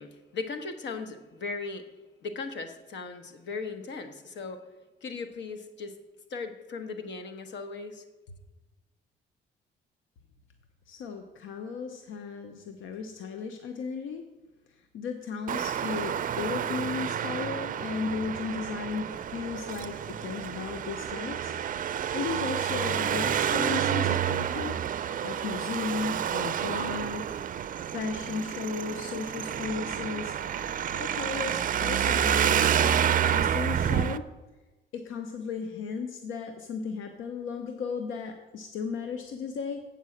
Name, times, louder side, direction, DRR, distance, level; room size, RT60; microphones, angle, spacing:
voice 1, 0.0-1.9 2.2-4.6 5.0-6.0 6.3-8.0, left 4 dB, 65° left, 8 dB, 1.2 m, -37 dB
voice 2, 10.9-14.2 14.9-21.5 22.1-24.8 25.2-27.7 27.9-30.3 30.9-33.0 33.3-34.2 34.9-39.8, left 5 dB, 80° left, 6 dB, 0.8 m, -35 dB
Traffic noise roadway noise, 15.5-34.2, right 9 dB, 45° right, 0.4 m, -29 dB
8.3 x 5.4 x 7.7 m, 1.1 s
cardioid pair, 90°, 20 cm